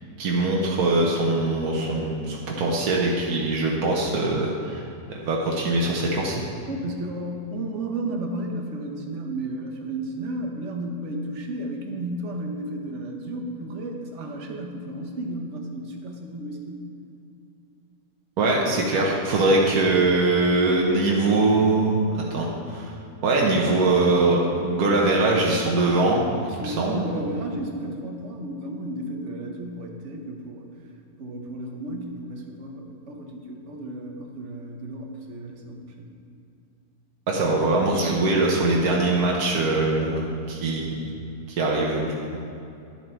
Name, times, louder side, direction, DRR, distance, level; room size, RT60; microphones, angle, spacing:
voice 1, 0.2-4.8 5.1-6.4 18.4-22.9 23.2-27.0 37.3-41.1 41.5-42.4, right 2 dB, 80° right, -2 dB, 1.5 m, -22 dB
voice 2, 6.7-16.9 24.9-25.6 26.5-30.7 31.2-36.1, right 1 dB, 55° right, 2 dB, 1.3 m, -33 dB
11.0 x 7.2 x 4.5 m, 2.6 s
omnidirectional pair, 1.6 m